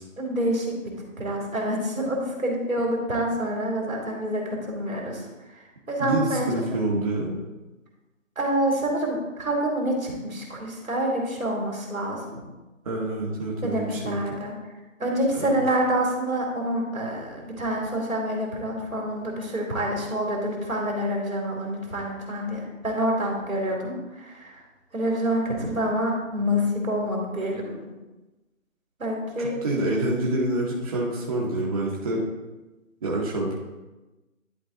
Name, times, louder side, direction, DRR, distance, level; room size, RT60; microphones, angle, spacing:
voice 1, 0.2-5.2 5.9-6.8 8.4-12.4 13.6-14.5 15.0-24.6 24.9-27.9 29.0-29.5, equal, 80° right, -1 dB, 2.6 m, -27 dB
voice 2, 6.0-7.4 12.8-14.2 15.4-15.6 29.4-32.2 33.0-33.5, right 1 dB, 25° right, -3 dB, 1.0 m, -27 dB
10.5 x 3.8 x 3.8 m, 1.1 s
figure-of-eight pair, 155°, 40 cm